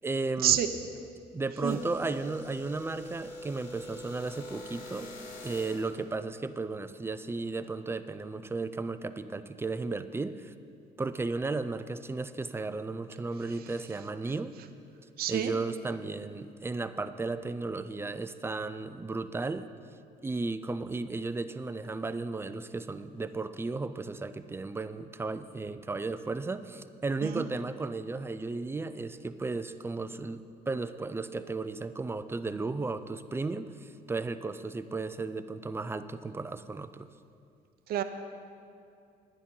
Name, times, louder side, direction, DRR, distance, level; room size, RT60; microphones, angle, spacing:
voice 1, 0.0-0.6 1.3-5.1 5.4-10.5 11.0-14.5 15.3-19.7 20.2-37.1, right 3 dB, 15° right, 12 dB, 0.4 m, -34 dB
sound 1, 1.6-6.0, left 1 dB, 65° left, 1.9 m, -44 dB
voice 2, 15.2-15.5 27.2-27.4 37.9-38.0, right 11 dB, 65° right, 8 dB, 0.7 m, -27 dB
11.0 x 10.0 x 5.5 m, 2.5 s
cardioid pair, 110°, 17 cm